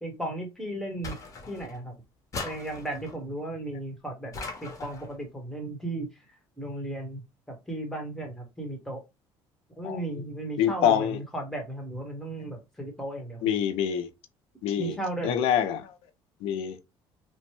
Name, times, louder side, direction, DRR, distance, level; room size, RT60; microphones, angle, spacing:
voice 1, 0.0-1.2 1.5-1.9 2.4-4.3 4.6-6.1 6.6-7.2 7.7-9.0 9.8-13.6 14.8-15.4, right 1 dB, 5° left, 1.1 m, -35 dB
sound 1, 1.0-1.8 2.3-3.2 4.3-5.1, left 3 dB, 35° left, 1.0 m, -39 dB
voice 2, 9.8-10.3 10.6-11.2 13.4-14.1 14.6-15.0 15.2-15.8 16.4-16.8, left 9 dB, 85° left, 0.5 m, -26 dB
3.0 x 2.1 x 3.0 m
cardioid pair, 140°, 10 cm